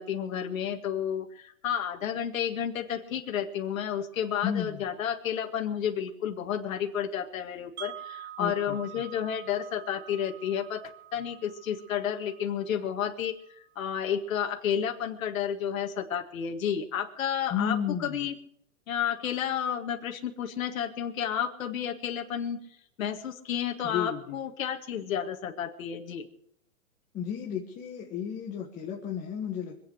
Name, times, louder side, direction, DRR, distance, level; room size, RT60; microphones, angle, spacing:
voice 1, 0.0-18.4 18.9-22.6 23.0-26.3, left 9 dB, 65° left, 3 dB, 2.0 m, -31 dB
voice 2, 4.4-4.8 8.4-9.1 17.5-18.3 23.8-24.4 27.1-29.9, left 8 dB, 15° left, 0 dB, 1.7 m, -33 dB
Wind chime, 7.8-13.8, right 13 dB, 50° right, 1.5 m, -47 dB
25.0 x 8.5 x 6.4 m, 0.68 s
hypercardioid pair, 155°, 43 cm